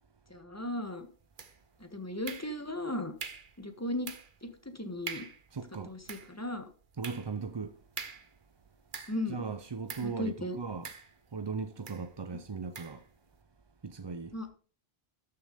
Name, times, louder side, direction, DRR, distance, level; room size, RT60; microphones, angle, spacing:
voice 1, 0.3-1.1 1.8-3.1 3.6-4.1 4.4-5.3 5.9-6.7 9.1-9.4 10.0-10.6 14.3-14.5, left 1 dB, 15° left, 1.4 m, -36 dB
sound 1, 1.4-1.8 2.3-2.8 3.2-3.6 4.1-4.4 4.7-4.8 5.1-5.5 5.9-9.4 9.9-10.2 10.8-11.4 11.9-12.1 12.7-13.0, right 6 dB, 55° right, 1.1 m, -44 dB
voice 2, 5.5-5.9 7.0-7.8 9.3-10.9 11.3-13.0 13.8-14.3, right 4 dB, 30° right, 0.5 m, -38 dB
13.0 x 6.6 x 5.2 m
omnidirectional pair, 1.0 m